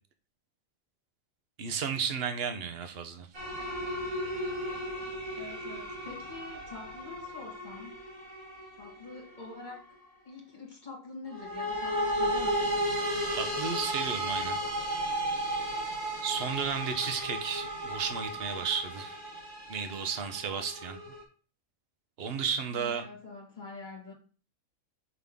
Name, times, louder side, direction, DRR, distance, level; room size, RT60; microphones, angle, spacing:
voice 1, 1.6-3.3 13.3-14.6 16.2-19.2 19.7-21.0 22.2-23.0, right 6 dB, 50° right, 0.9 m, -33 dB
sound 1, 3.3-9.8 11.3-21.2, equal, 70° right, 2.4 m, -34 dB
voice 2, 5.4-8.0 8.8-9.9 10.2-12.8 22.7-24.1, left 3 dB, 35° left, 1.8 m, -45 dB
6.0 x 5.5 x 3.6 m
omnidirectional pair, 1.5 m